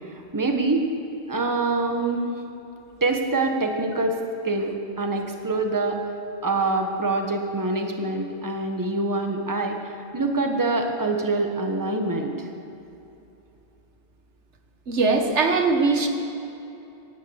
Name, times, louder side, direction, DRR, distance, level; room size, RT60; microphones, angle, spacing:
voice 1, 0.1-0.8 1.3-2.3 3.0-6.0 6.4-12.5, right 2 dB, 15° right, 3 dB, 1.3 m, -25 dB
voice 2, 14.9-16.1, right 3 dB, 85° right, 5 dB, 1.7 m, -20 dB
18.0 x 9.6 x 8.0 m, 2.9 s
omnidirectional pair, 1.2 m